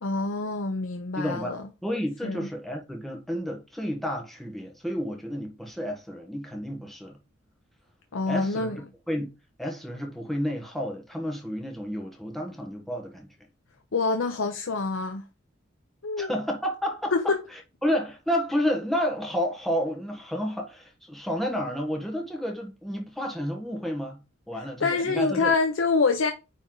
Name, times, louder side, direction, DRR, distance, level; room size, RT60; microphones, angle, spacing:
voice 1, 0.0-1.6 2.2-2.5 8.1-8.8 13.9-15.2 16.0-16.3 17.1-17.4 24.8-26.3, left 4 dB, 85° left, 0.7 m, -26 dB
voice 2, 1.1-1.6 1.8-7.2 8.3-8.7 9.1-9.3 9.6-13.3 16.2-24.2 24.5-25.5, equal, ahead, 1.4 m, -31 dB
9.1 x 3.4 x 3.9 m
head